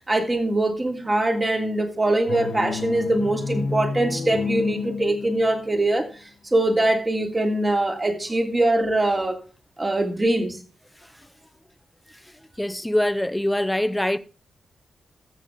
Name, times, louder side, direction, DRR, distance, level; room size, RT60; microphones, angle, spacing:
voice 1, 0.1-6.1 6.5-9.4 9.8-10.6, right 1 dB, 30° right, 3.0 m, -22 dB
sound 1, 2.3-6.0, left 4 dB, 90° left, 1.3 m, -30 dB
voice 2, 12.6-14.2, left 1 dB, 10° left, 0.9 m, -23 dB
14.0 x 7.2 x 3.6 m
supercardioid pair, 45°, 0 cm